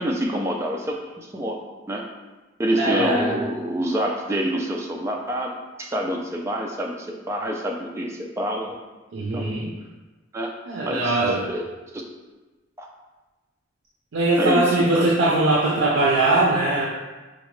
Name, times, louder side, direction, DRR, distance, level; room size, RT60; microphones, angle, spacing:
voice 1, 0.0-1.6 1.9-2.1 2.6-5.5 5.8-8.8 9.3-9.5 10.3-10.5 10.8-11.2 11.4-11.6 11.9-12.0 12.8-12.9 14.4-14.6 14.9-15.1, equal, 15° right, 0 dB, 0.3 m, -26 dB
voice 2, 2.8-3.3 9.1-9.7 10.7-11.5 14.1-16.9, right 2 dB, 80° right, -4 dB, 0.5 m, -21 dB
4.6 x 2.1 x 3.0 m, 1.2 s
head